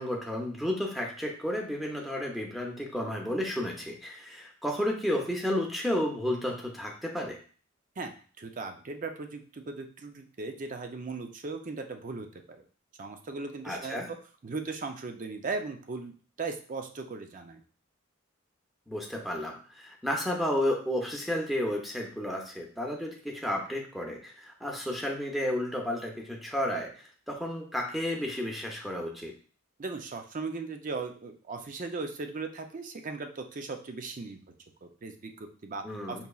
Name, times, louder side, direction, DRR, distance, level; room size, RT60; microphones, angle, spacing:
voice 1, 0.0-7.4 13.6-14.1 18.9-29.3 35.8-36.2, left 1 dB, ahead, 0 dB, 0.6 m, -32 dB
voice 2, 8.0-12.6 13.0-14.2 14.4-17.6 29.8-34.4 34.8-36.3, right 3 dB, 40° right, 5 dB, 0.5 m, -38 dB
5.4 x 2.9 x 2.3 m, 0.42 s
head